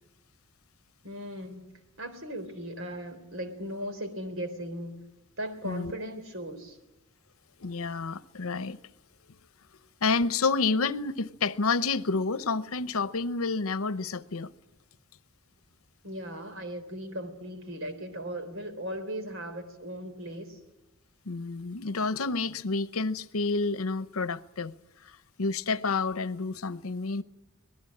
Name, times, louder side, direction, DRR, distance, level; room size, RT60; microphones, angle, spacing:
voice 1, 1.0-1.7 2.0-5.0 5.4-6.8 16.0-20.6, equal, 65° right, 3.8 m, -37 dB
voice 2, 7.6-8.8 10.0-14.5 21.3-24.7 25.4-27.2, left 4 dB, 80° left, 0.8 m, -29 dB
25.0 x 19.0 x 8.7 m
head